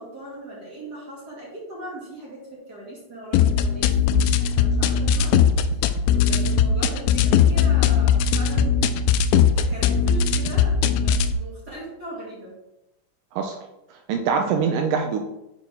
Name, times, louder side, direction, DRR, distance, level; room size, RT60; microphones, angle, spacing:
voice 1, 0.0-5.3 5.7-8.8 9.5-10.8 11.0-12.6, right 1 dB, 30° right, -5 dB, 2.2 m, -39 dB
sound 1, 3.3-11.3, left 7 dB, 85° left, 2.4 m, -19 dB
voice 2, 13.9-15.2, right 6 dB, 80° right, 4 dB, 2.2 m, -24 dB
7.2 x 4.6 x 6.0 m, 0.91 s
omnidirectional pair, 4.2 m